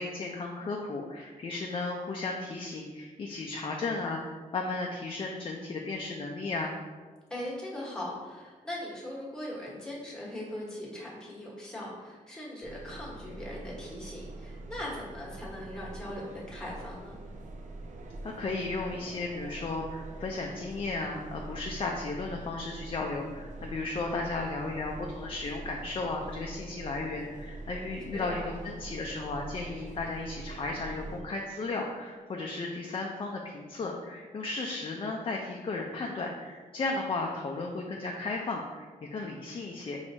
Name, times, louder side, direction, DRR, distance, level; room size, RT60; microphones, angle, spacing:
voice 1, 0.0-6.8 18.2-40.0, left 3 dB, 40° left, 0 dB, 0.4 m, -35 dB
voice 2, 7.3-17.2 28.1-28.5, left 1 dB, 5° left, -6 dB, 1.3 m, -40 dB
sound 1, 12.6-31.2, right 2 dB, 60° right, 0.5 m, -44 dB
4.4 x 3.2 x 2.7 m, 1.4 s
cardioid pair, 90°, 14 cm